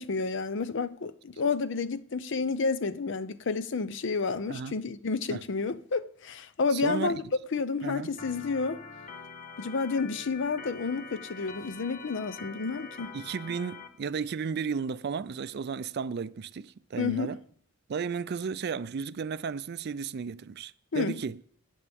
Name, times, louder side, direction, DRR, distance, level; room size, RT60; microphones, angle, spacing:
voice 1, 0.0-7.2 7.5-8.8 9.6-13.1 17.0-17.3 20.9-21.2, left 4 dB, 65° left, 0.6 m, -30 dB
voice 2, 6.7-7.2 7.8-8.1 13.1-17.4 17.9-21.4, right 6 dB, 55° right, 0.4 m, -34 dB
Organ, 8.2-13.9, left 4 dB, 40° left, 1.0 m, -44 dB
18.0 x 8.5 x 3.5 m
head